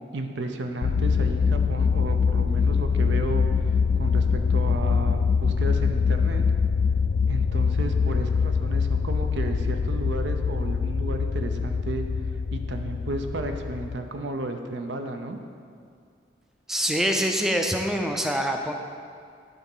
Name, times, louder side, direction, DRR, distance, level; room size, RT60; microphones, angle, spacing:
voice 1, 0.1-6.4 7.3-12.1 12.5-15.4, right 2 dB, 75° right, 5 dB, 0.7 m, -33 dB
sound 1, 0.8-14.0, left 5 dB, 75° left, 0.4 m, -24 dB
voice 2, 16.7-18.7, equal, ahead, 3 dB, 0.4 m, -25 dB
10.5 x 3.9 x 5.6 m, 2.3 s
head